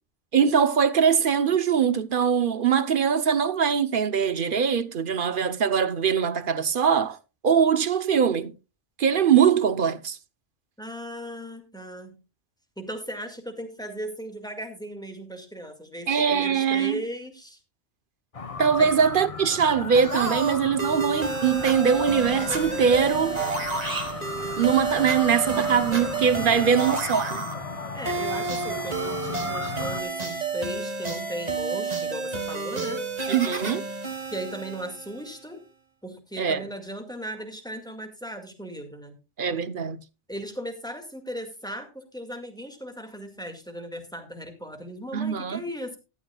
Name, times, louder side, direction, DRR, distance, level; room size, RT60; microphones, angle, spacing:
voice 1, 0.3-7.2 7.4-8.5 9.0-10.2 16.1-17.0 18.6-23.4 24.6-27.4 33.3-33.9 36.4-36.6 39.4-40.0 45.1-45.6, right 7 dB, 50° right, 0.9 m, -22 dB
voice 2, 10.8-12.2 12.8-17.6 18.8-18.9 26.4-26.8 27.9-33.0 34.3-35.6 36.0-39.1 40.3-46.0, equal, 5° left, 2.0 m, -37 dB
sound 1, 18.3-30.0, left 4 dB, 35° left, 0.9 m, -36 dB
sound 2, 19.9-35.4, right 4 dB, 35° right, 1.7 m, -31 dB
sound 3, 21.5-26.6, right 1 dB, 15° right, 2.8 m, -43 dB
16.5 x 12.0 x 2.3 m
omnidirectional pair, 1.2 m